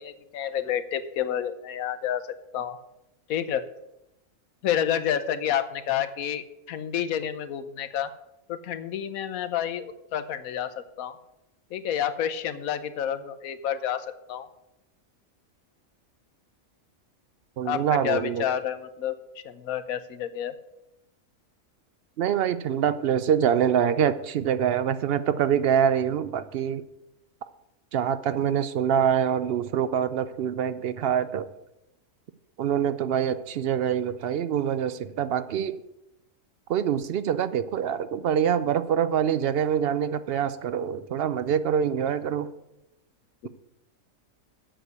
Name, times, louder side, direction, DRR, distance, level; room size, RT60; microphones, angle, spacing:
voice 1, 0.0-2.2 2.5-2.8 3.3-3.7 4.6-8.1 8.5-11.1 11.7-14.5 17.6-19.2 19.4-20.5 43.4-43.5, left 9 dB, 85° left, 12 dB, 1.2 m, -29 dB
voice 2, 17.6-18.4 22.2-26.8 27.9-31.5 32.6-35.8 36.7-42.5, right 8 dB, 65° right, 14 dB, 0.6 m, -25 dB
7.9 x 6.2 x 8.0 m, 0.88 s
omnidirectional pair, 1.4 m